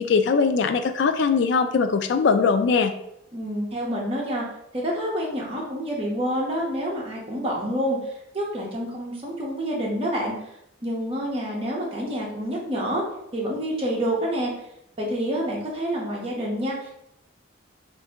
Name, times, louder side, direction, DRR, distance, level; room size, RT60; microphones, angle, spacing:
voice 1, 0.0-2.9, left 5 dB, 60° left, 7 dB, 0.3 m, -21 dB
voice 2, 3.3-4.5 4.7-10.3 10.8-13.0 13.3-14.5 15.0-16.9, equal, 30° right, -4 dB, 0.7 m, -28 dB
2.7 x 2.6 x 3.4 m, 0.79 s
head